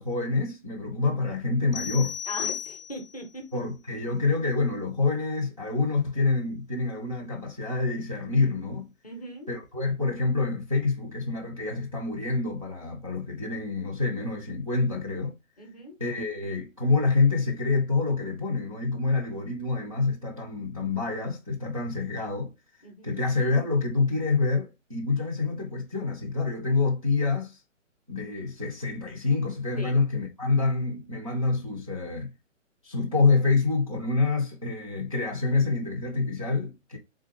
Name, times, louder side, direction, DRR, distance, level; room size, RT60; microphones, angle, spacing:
voice 1, 0.0-2.2 3.5-8.9 9.5-15.4 16.0-22.5 23.0-27.6 28.1-32.3 32.8-37.0, left 3 dB, 30° right, 0.5 m, -27 dB
sound 1, 1.7-3.2, left 9 dB, 85° left, 0.5 m, -34 dB
voice 2, 2.3-3.6 9.0-9.5 15.6-16.0 22.8-23.2 29.8-30.0, left 1 dB, 30° left, 0.6 m, -40 dB
3.6 x 3.4 x 2.9 m
hypercardioid pair, 180°, 39 cm